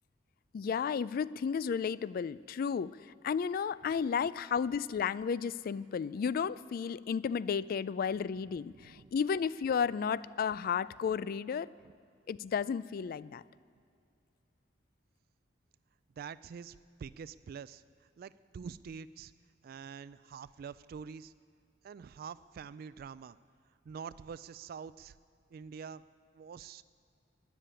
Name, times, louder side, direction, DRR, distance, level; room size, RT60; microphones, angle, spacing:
voice 1, 0.5-3.0 3.2-11.7 12.3-13.4, left 6 dB, 50° left, 19 dB, 0.3 m, -33 dB
voice 2, 8.7-9.1 16.2-17.8 18.2-19.3 19.6-21.3 21.8-23.4 23.9-25.1 25.5-26.0 26.3-26.8, right 6 dB, 55° right, 16 dB, 0.3 m, -46 dB
13.5 x 8.3 x 10.0 m, 2.4 s
head